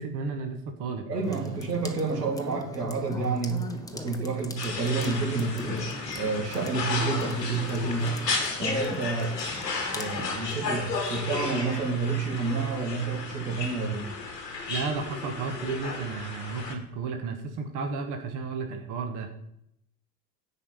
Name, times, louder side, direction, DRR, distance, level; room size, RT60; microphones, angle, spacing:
voice 1, 0.0-1.6 14.7-19.3, right 4 dB, 40° right, 5 dB, 1.4 m, -33 dB
voice 2, 1.0-3.6 3.9-5.9 6.2-8.2 8.6-9.4 9.9-14.1, right 4 dB, 80° right, 1 dB, 2.3 m, -29 dB
sound 1, 1.2-10.3, left 2 dB, 5° left, 1.0 m, -39 dB
sound 2, 4.6-16.7, left 4 dB, 85° left, 1.9 m, -34 dB
9.9 x 4.9 x 6.9 m, 0.77 s
figure-of-eight pair, 80°, 48 cm